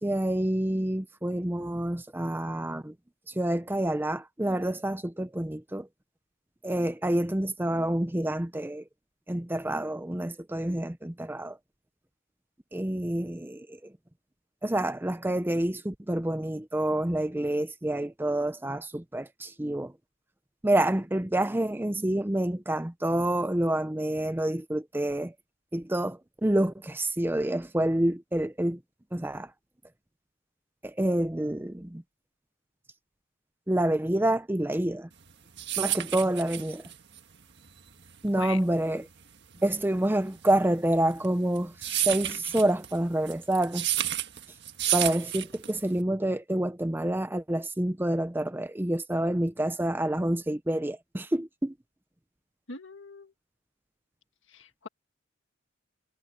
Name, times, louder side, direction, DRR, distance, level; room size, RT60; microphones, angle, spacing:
voice 1, 0.0-2.9 3.3-5.9 6.6-8.8 9.3-11.6 12.7-13.8 14.6-19.9 20.6-25.3 25.7-28.8 29.1-29.5 30.8-32.0 33.7-35.1 35.8-36.8 38.2-39.1 39.6-43.9 44.9-51.7, right 1 dB, 10° right, 0.6 m, -28 dB
sound 1, 35.2-46.0, right 12 dB, 55° right, 1.7 m, -32 dB
voice 2, 52.7-53.3 54.5-54.9, left 4 dB, 60° left, 1.9 m, -41 dB
head